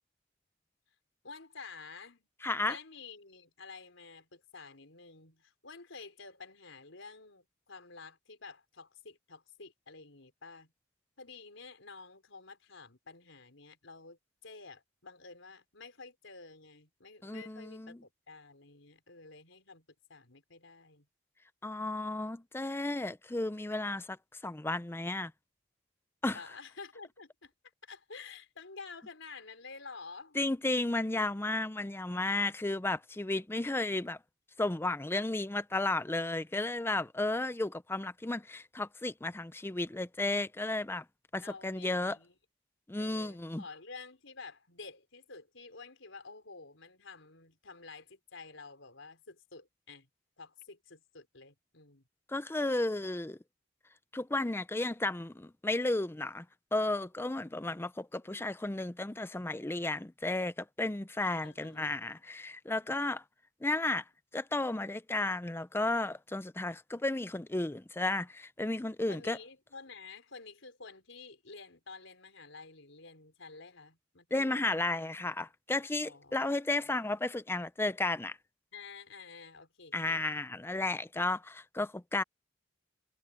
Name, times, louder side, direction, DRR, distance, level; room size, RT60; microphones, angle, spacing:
voice 1, 1.2-2.3 2.7-10.7 11.2-21.1 26.3-27.5 27.8-30.4 41.4-42.4 42.9-50.1 50.4-52.0 61.4-61.9 69.1-74.8 76.0-76.4 76.7-76.9 78.7-80.3, left 4 dB, 90° left, 4.4 m, -50 dB
voice 2, 2.4-2.8 17.2-18.0 21.6-24.2 24.4-25.3 26.2-26.4 30.4-34.2 34.6-41.0 41.3-42.2 42.9-43.6 52.3-53.4 54.1-56.5 56.7-63.2 63.6-64.0 64.3-69.4 74.3-78.4 79.9-82.2, left 2 dB, 10° left, 0.5 m, -33 dB
head